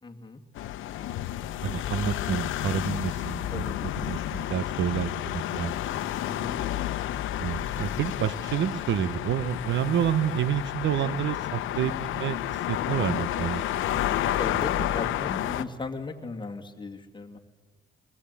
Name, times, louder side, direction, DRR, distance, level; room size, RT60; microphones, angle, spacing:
voice 1, 0.0-0.4 3.5-3.8 6.2-6.6 11.0-11.2 14.4-17.4, left 3 dB, 25° left, 2 dB, 2.6 m, -37 dB
sound 1, 0.6-15.6, left 12 dB, 85° left, 0.9 m, -31 dB
voice 2, 1.6-3.7 4.1-6.0 7.4-14.1, right 9 dB, 70° right, 15 dB, 1.0 m, -29 dB
24.5 x 20.5 x 8.5 m, 1.4 s
cardioid pair, 90°, 20 cm